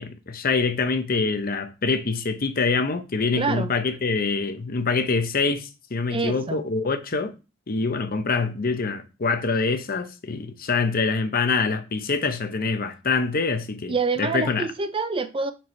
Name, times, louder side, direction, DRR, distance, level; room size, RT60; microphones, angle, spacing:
voice 1, 0.0-7.3 7.7-14.7, left 4 dB, 50° left, 0.7 m, -25 dB
voice 2, 3.4-3.7 6.1-6.6 13.9-15.5, right 4 dB, 25° right, 0.5 m, -26 dB
4.6 x 4.5 x 5.2 m
head